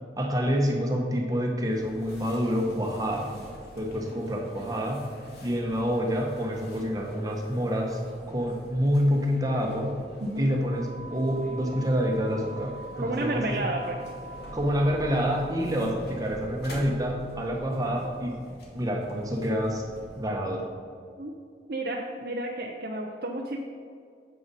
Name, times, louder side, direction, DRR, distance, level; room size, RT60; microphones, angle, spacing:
voice 1, 0.2-3.3 3.8-5.1 5.4-8.0 8.3-10.0 10.4-13.7 14.5-18.4 18.7-19.9 20.2-20.7, equal, 20° right, 0 dB, 1.2 m, -27 dB
sound 1, 1.7-20.3, equal, 65° left, 1.9 m, -44 dB
voice 2, 10.2-10.6 13.0-14.0 21.2-21.3 21.7-23.6, right 1 dB, 55° right, 0 dB, 0.7 m, -31 dB
9.1 x 7.7 x 4.2 m, 2.3 s
head